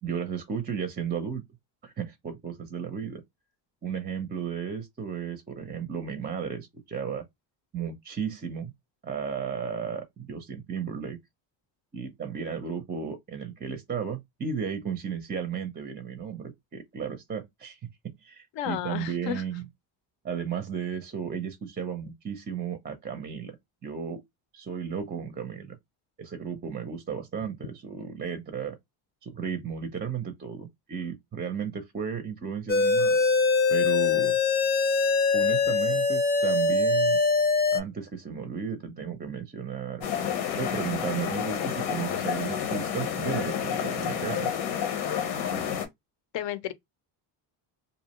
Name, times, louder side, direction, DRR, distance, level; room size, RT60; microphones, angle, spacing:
voice 1, 0.0-1.4 1.8-3.2 3.8-7.2 7.7-8.7 9.0-11.2 11.9-17.8 18.2-19.6 20.2-23.6 23.8-24.2 24.5-25.8 26.2-28.8 29.2-33.2 33.7-34.4 35.3-37.2 37.7-40.1 40.6-44.5, right 7 dB, 20° right, 0.5 m, -34 dB
voice 2, 18.5-19.4 46.3-46.7, left 11 dB, 60° left, 0.6 m, -32 dB
sound 1, 32.7-37.8, left 4 dB, 20° left, 0.6 m, -23 dB
sound 2, 40.0-45.9, left 8 dB, 85° left, 0.9 m, -30 dB
2.5 x 2.0 x 2.9 m
supercardioid pair, 80°, 49 cm